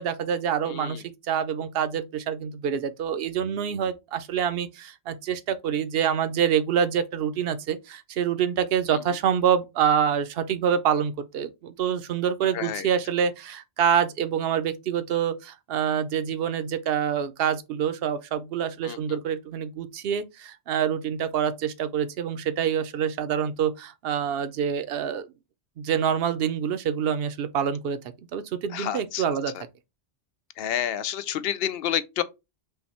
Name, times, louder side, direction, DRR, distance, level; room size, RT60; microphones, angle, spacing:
voice 1, 0.0-25.3 25.8-28.0 28.3-29.5, right 8 dB, 65° right, 0.8 m, -26 dB
voice 2, 12.5-12.9 18.8-19.0 28.7-29.2 30.6-32.2, left 10 dB, 65° left, 0.7 m, -29 dB
5.6 x 2.2 x 4.1 m
omnidirectional pair, 1.1 m